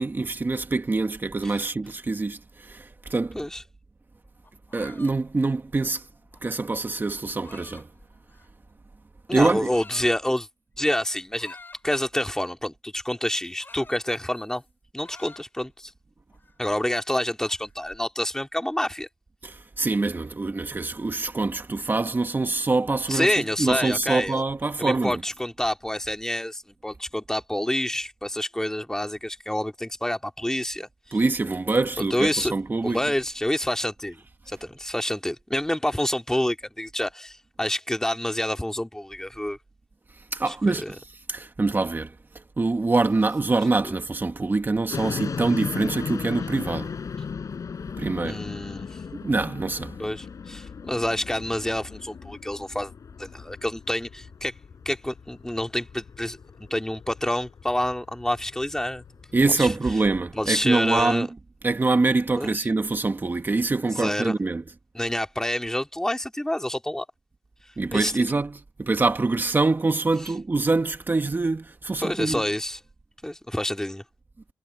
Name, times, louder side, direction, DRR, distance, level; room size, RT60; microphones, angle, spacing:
voice 1, 0.0-3.4 4.7-6.1 6.4-7.9 9.3-9.7 19.4-25.2 31.1-33.0 40.2-42.1 42.6-46.9 48.0-48.4 49.1-49.9 59.3-61.3 61.6-64.6 67.8-72.4, right 3 dB, 30° right, 1.6 m, -25 dB
sound 1, 4.3-8.7 9.4-10.1 11.3-12.0 13.2-14.7 15.0-15.9 16.3-18.0, left 3 dB, 30° left, 4.1 m, -50 dB
voice 2, 9.3-10.5 10.8-11.6 11.8-14.6 14.9-15.9 16.6-19.1 23.1-24.4 24.8-30.9 32.1-32.5 32.8-34.2 34.5-39.6 40.5-40.9 48.2-49.0 50.0-52.9 53.2-54.5 54.8-56.4 56.7-59.0 59.5-59.7 60.3-61.3 62.4-62.6 63.9-64.3 64.9-67.0 67.9-68.3 72.0-72.8 73.2-74.0, left 1 dB, 10° left, 2.8 m, -28 dB
sound 2, 44.9-61.2, left 6 dB, 60° left, 4.5 m, -37 dB
cardioid pair, 65°, 6 cm